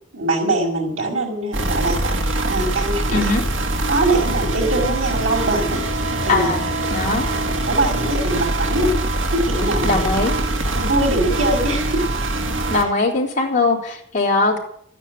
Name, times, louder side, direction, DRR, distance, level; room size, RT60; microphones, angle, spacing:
voice 1, 0.1-3.3 3.9-5.8 6.2-6.5 7.7-8.9 9.3-10.0 10.8-12.0, right 2 dB, 90° right, -4 dB, 5.5 m, -22 dB
sound 1, 1.5-12.8, right 2 dB, 70° right, 2.1 m, -23 dB
voice 2, 3.1-3.4 6.3-7.3 9.8-10.3 12.7-14.6, left 3 dB, 40° left, -3 dB, 4.0 m, -20 dB
13.0 x 9.9 x 9.4 m, 0.65 s
head